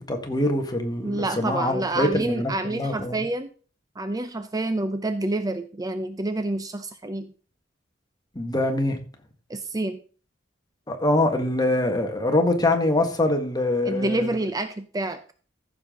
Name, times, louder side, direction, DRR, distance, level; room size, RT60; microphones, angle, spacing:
voice 1, 0.0-3.2 8.3-9.0 10.9-14.4, left 1 dB, 20° left, 1.7 m, -24 dB
voice 2, 1.0-3.5 4.0-7.3 9.5-10.0 13.8-15.2, right 2 dB, 20° right, 0.6 m, -28 dB
14.5 x 7.0 x 3.8 m
head